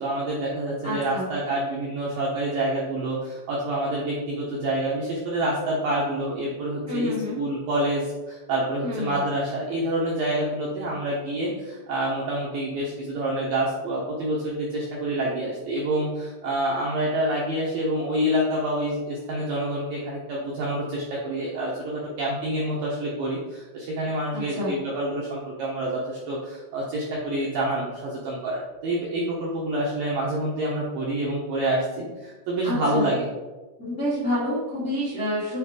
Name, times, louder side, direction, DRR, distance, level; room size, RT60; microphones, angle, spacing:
voice 1, 0.0-33.3, right 1 dB, 75° right, -5 dB, 2.0 m, -27 dB
voice 2, 0.8-1.3 6.8-7.4 8.8-9.2 24.3-24.7 32.6-33.1 33.8-35.6, left 1 dB, 65° left, -7 dB, 0.6 m, -28 dB
7.7 x 4.5 x 4.9 m, 1.2 s
omnidirectional pair, 5.7 m